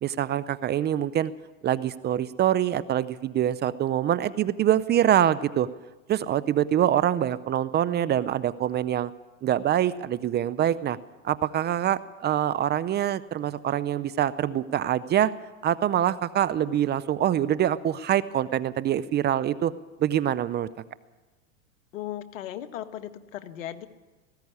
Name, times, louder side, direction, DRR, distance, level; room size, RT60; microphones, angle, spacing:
voice 1, 0.0-1.3 1.6-5.7 6.1-9.1 9.4-11.0 11.2-15.3 15.6-19.7 20.0-20.7, right 11 dB, 25° right, 15 dB, 0.6 m, -25 dB
voice 2, 21.9-23.9, left 12 dB, 70° left, 9 dB, 1.7 m, -37 dB
19.0 x 15.5 x 9.6 m, 1.2 s
hypercardioid pair, 110°, 40 cm